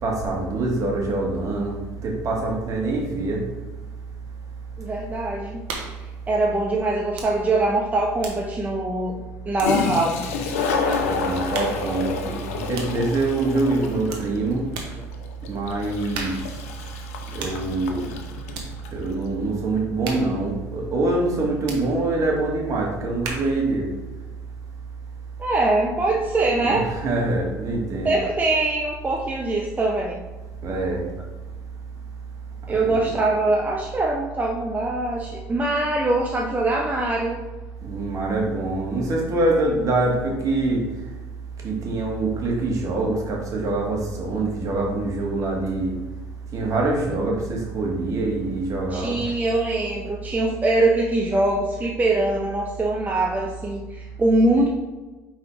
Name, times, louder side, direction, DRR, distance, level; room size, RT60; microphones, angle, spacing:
voice 1, 0.0-3.4 11.0-14.6 15.5-16.4 17.3-18.0 18.9-23.9 26.6-28.1 30.6-31.0 32.7-33.0 37.8-40.8 41.6-45.9 46.5-49.3, right 2 dB, 45° right, -1 dB, 1.8 m, -24 dB
voice 2, 4.8-5.6 6.3-10.4 13.8-14.0 25.4-26.9 28.0-30.2 32.7-37.4 48.9-54.7, right 2 dB, 20° right, -1 dB, 0.7 m, -23 dB
sound 1, 5.7-6.1 7.1-7.4 7.7-10.1 10.9-11.1 11.5-11.9 12.7-13.0 14.1-14.3 14.7-15.0 16.1-16.6 17.4-17.7 18.5-18.8 20.0-20.4 21.6-21.9 23.2-23.6, right 4 dB, 70° right, 1.2 m, -36 dB
Toilet flush, 7.6-7.7 9.3-9.4 9.6-19.0, left 5 dB, 90° left, 0.7 m, -29 dB
4.7 x 4.1 x 4.9 m, 1.2 s
supercardioid pair, 85°, 8 cm